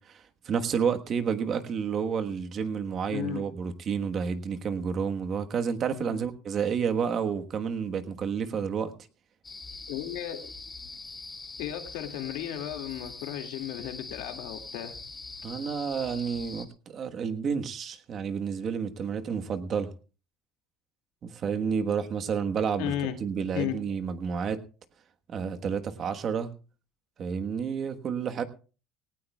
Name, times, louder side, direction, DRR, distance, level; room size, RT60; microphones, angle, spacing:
voice 1, 0.1-8.9 15.4-19.9 21.2-22.9 23.2-24.6 25.3-26.5 27.2-28.4, right 6 dB, 40° right, 8 dB, 1.3 m, -30 dB
voice 2, 3.1-3.4 5.9-6.3 9.9-10.5 11.6-15.0 22.8-23.2 23.5-23.8, left 11 dB, 90° left, 5 dB, 2.2 m, -34 dB
sound 1, 9.4-16.7, left 3 dB, 15° left, 1.9 m, -43 dB
18.0 x 17.5 x 2.3 m, 0.35 s
cardioid pair, 140°, 0 cm